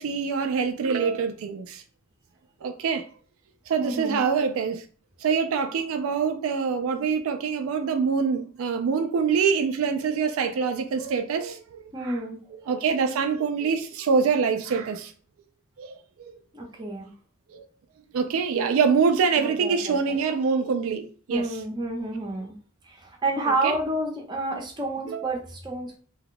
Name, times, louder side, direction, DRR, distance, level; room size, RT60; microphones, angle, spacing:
voice 1, 0.0-1.8 2.6-3.1 3.7-4.9 5.2-12.2 12.7-15.1 15.8-16.3 17.5-17.7 18.1-21.6 23.5-23.7 25.1-25.3, right 5 dB, 70° right, 0.3 m, -25 dB
voice 2, 3.8-4.2 11.9-12.4 16.5-17.1 19.4-20.2 21.3-22.6 22.9-26.0, right 2 dB, 20° right, 0.7 m, -30 dB
2.8 x 2.2 x 3.8 m
head